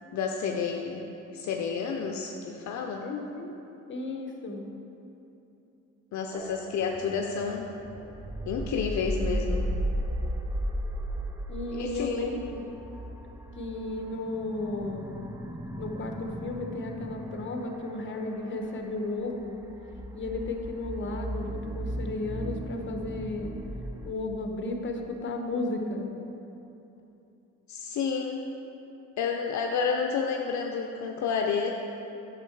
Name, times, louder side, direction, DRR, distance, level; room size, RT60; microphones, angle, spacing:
voice 1, 0.1-3.0 6.1-7.7 8.5-9.7 11.7-12.2 27.7-28.5 29.2-31.7, left 6 dB, 70° left, 2 dB, 0.6 m, -30 dB
voice 2, 3.0-3.5 3.9-4.7 11.5-12.7 13.6-15.1 15.8-19.6 20.1-23.5 24.0-26.1, left 2 dB, 40° left, 3 dB, 1.1 m, -34 dB
sound 1, 6.3-24.1, right 1 dB, 10° right, 0.5 m, -36 dB
8.8 x 6.6 x 4.6 m, 3.0 s
cardioid pair, 90°, 30 cm